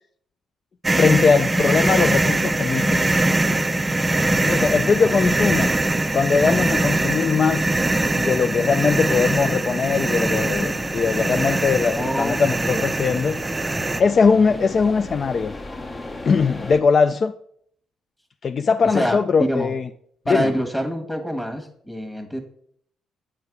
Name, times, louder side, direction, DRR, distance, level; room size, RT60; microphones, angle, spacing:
sound 1, 0.8-14.0, right 2 dB, 20° right, 0.5 m, -22 dB
voice 1, 0.9-3.0 4.4-5.7 6.1-7.6 8.1-13.4 14.0-15.5 16.2-17.3 18.4-19.8 20.3-20.5, left 5 dB, 45° left, 0.3 m, -20 dB
sound 2, 10.5-16.8, left 2 dB, 25° left, 0.7 m, -37 dB
voice 2, 11.9-13.3 14.5-14.7 18.8-19.7 20.2-22.4, equal, 5° left, 1.4 m, -26 dB
8.4 x 4.7 x 4.8 m
cardioid pair, 90°, 0 cm